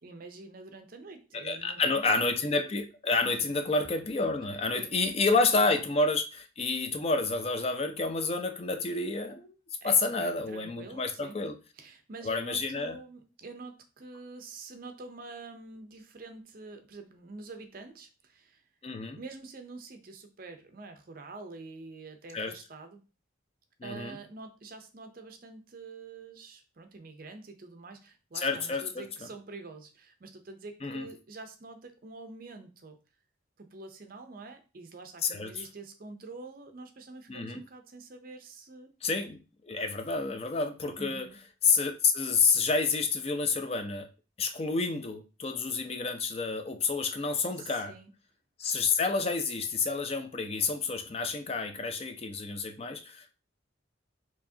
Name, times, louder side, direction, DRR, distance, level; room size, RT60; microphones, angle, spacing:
voice 1, 0.0-2.3 3.2-3.4 4.7-5.6 9.8-11.4 11.7-18.6 19.1-23.0 23.8-33.0 33.6-38.9 41.0-41.4 47.6-48.1, right 3 dB, 45° right, 6 dB, 0.5 m, -46 dB
voice 2, 1.3-9.5 9.8-11.6 12.2-13.0 18.8-19.2 22.3-22.5 23.8-24.2 28.3-29.1 30.8-31.0 35.2-35.6 37.3-37.6 39.0-41.3 41.6-44.1 44.4-47.9 48.6-53.3, left 4 dB, 30° left, 7 dB, 0.4 m, -29 dB
4.6 x 2.8 x 2.7 m, 0.32 s
head